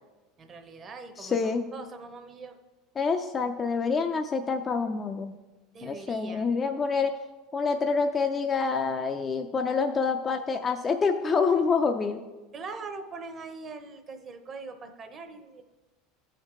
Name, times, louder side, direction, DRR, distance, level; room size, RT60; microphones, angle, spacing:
voice 1, 0.4-2.6 5.7-6.5 12.5-15.6, right 4 dB, 30° right, 6 dB, 0.7 m, -42 dB
voice 2, 1.2-1.6 3.0-5.3 5.8-7.1 7.5-12.2, left 5 dB, 20° left, 5 dB, 0.4 m, -27 dB
13.0 x 4.5 x 3.6 m, 1.2 s
supercardioid pair, 140°, 0 cm